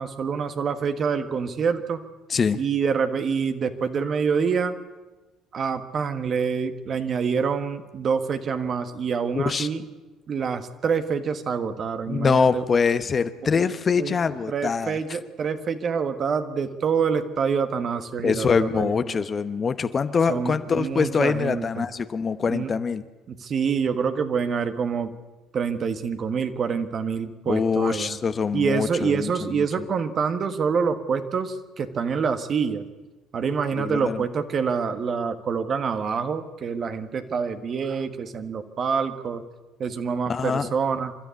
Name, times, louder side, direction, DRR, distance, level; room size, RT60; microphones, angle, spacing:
voice 1, 0.0-2.0 2.6-4.8 5.5-9.8 10.3-12.6 13.6-13.7 14.0-14.2 14.5-19.2 20.3-21.9 22.5-22.7 23.3-25.1 25.5-28.2 28.5-32.8 33.3-39.4 39.8-41.2, right 6 dB, 45° right, 8 dB, 1.5 m, -26 dB
voice 2, 9.3-9.7 12.1-15.0 18.2-23.0 27.5-29.7 33.8-34.2 40.3-40.7, left 5 dB, 35° left, 12 dB, 1.0 m, -24 dB
28.0 x 12.5 x 8.4 m, 1.2 s
hypercardioid pair, 55°, 0 cm